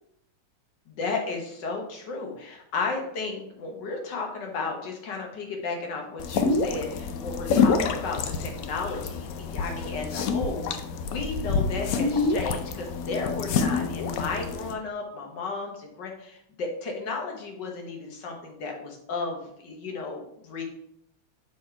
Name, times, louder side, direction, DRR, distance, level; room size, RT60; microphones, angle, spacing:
voice 1, 0.9-20.6, left 4 dB, 60° left, 2 dB, 1.7 m, -34 dB
sound 1, 6.2-14.7, left 5 dB, 85° left, 0.7 m, -27 dB
6.4 x 4.2 x 4.5 m, 0.76 s
omnidirectional pair, 2.2 m